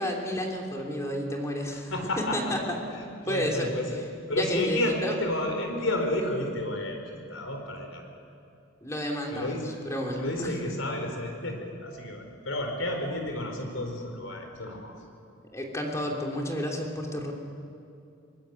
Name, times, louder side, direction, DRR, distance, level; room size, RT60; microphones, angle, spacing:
voice 1, 0.0-1.9 2.2-2.8 3.2-3.7 4.3-5.1 8.8-9.6 9.9-10.5 15.5-17.3, equal, 15° left, 0 dB, 3.1 m, -31 dB
voice 2, 1.7-2.6 2.9-3.9 4.3-7.0 7.3-8.0 9.3-9.6 10.2-14.9, left 1 dB, 85° left, 4 dB, 4.7 m, -31 dB
23.0 x 21.0 x 9.7 m, 2.5 s
head